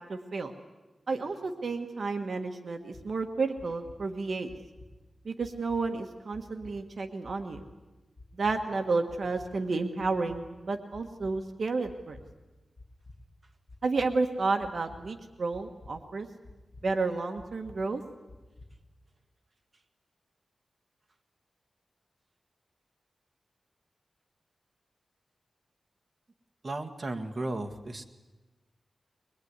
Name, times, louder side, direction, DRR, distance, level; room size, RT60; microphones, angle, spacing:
voice 1, 0.1-0.5 1.1-4.5 5.2-7.6 8.4-12.2 13.8-16.3 16.8-18.0, right 3 dB, 50° right, 5 dB, 1.5 m, -31 dB
sound 1, 2.9-3.0 3.6-4.0 4.5-4.9 5.4-5.8 6.3-6.7 7.2-7.6 8.2-8.6 9.1-9.5 10.0-10.4 10.9-11.3 11.8-12.2 12.8-13.2 13.7-14.1 14.6-15.0 15.5-15.9 16.4-16.8 17.4-17.8 18.3-18.7, left 2 dB, 35° left, 4.9 m, -50 dB
voice 2, 26.6-28.0, right 2 dB, 30° right, 4 dB, 1.7 m, -35 dB
23.0 x 21.5 x 9.7 m, 1.1 s
wide cardioid pair, 160°, 0 cm